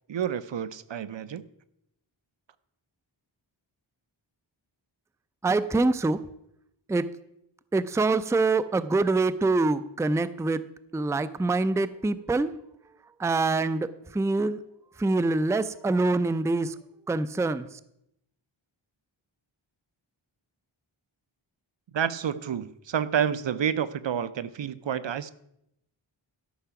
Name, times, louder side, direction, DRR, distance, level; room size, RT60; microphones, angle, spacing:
voice 1, 0.1-1.4 21.9-25.3, right 8 dB, 65° right, 16 dB, 0.6 m, -29 dB
voice 2, 5.4-6.2 6.9-7.0 7.7-10.6 10.9-12.5 13.2-13.9 14.1-14.6 15.0-16.7 17.1-17.7, right 3 dB, 5° right, 14 dB, 0.4 m, -25 dB
12.5 x 5.7 x 5.8 m, 0.79 s
wide cardioid pair, 60°, 47 cm